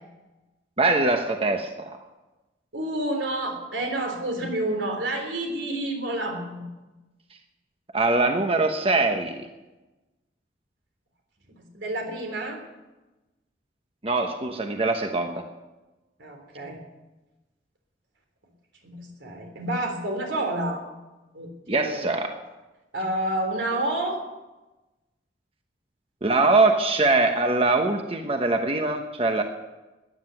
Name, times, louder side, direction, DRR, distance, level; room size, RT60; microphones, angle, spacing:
voice 1, 0.8-2.0 7.9-9.5 14.0-15.4 21.7-22.3 26.2-29.4, right 3 dB, 30° right, 5 dB, 1.0 m, -22 dB
voice 2, 2.7-6.7 11.6-12.6 16.2-16.8 18.8-20.8 21.3-22.0 22.9-24.2, right 1 dB, 85° right, 3 dB, 3.6 m, -29 dB
13.5 x 9.7 x 9.2 m, 1.1 s
head